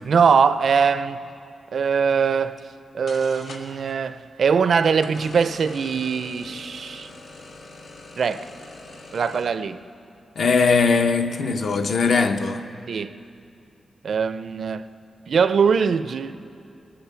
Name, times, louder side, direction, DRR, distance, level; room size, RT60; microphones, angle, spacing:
voice 1, 0.0-1.2 1.7-2.6 2.9-7.1 8.2-8.5 9.1-9.8 12.9-13.1 14.0-14.8 15.3-16.3, right 6 dB, 60° right, 0.4 m, -21 dB
sound 1, 2.7-2.8 3.1-3.9 5.0-9.4, left 2 dB, 90° left, 1.6 m, -42 dB
voice 2, 10.4-12.6, left 4 dB, 60° left, 0.7 m, -20 dB
19.0 x 8.9 x 7.3 m
wide cardioid pair, 150°, 0 cm